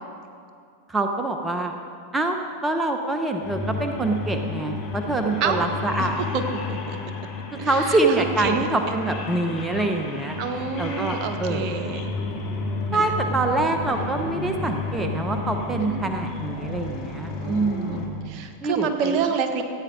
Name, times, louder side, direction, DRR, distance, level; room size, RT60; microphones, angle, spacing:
voice 1, 0.9-1.7 2.1-6.2 7.5-10.4 10.8-11.9 12.9-18.1 18.6-19.2, right 2 dB, 10° right, 4 dB, 0.9 m, -25 dB
sound 1, 3.4-18.1, left 3 dB, 45° left, 2.2 m, -31 dB
voice 2, 6.0-6.4 6.7-7.0 7.6-8.7 10.4-12.1 12.9-13.1 15.9-16.0 17.4-19.6, right 6 dB, 50° right, 6 dB, 1.2 m, -28 dB
15.0 x 8.9 x 5.1 m, 2.4 s
hypercardioid pair, 95°, 0 cm